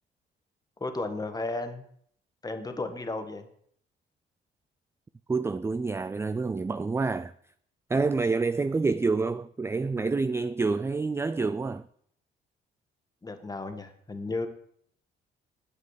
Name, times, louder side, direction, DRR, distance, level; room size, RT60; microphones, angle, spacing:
voice 1, 0.8-1.8 2.4-3.5 13.2-14.5, left 2 dB, 20° left, 1.6 m, -34 dB
voice 2, 5.3-7.3 7.9-11.9, right 4 dB, 15° right, 0.3 m, -27 dB
8.5 x 8.3 x 6.5 m
cardioid pair, 90°, 20 cm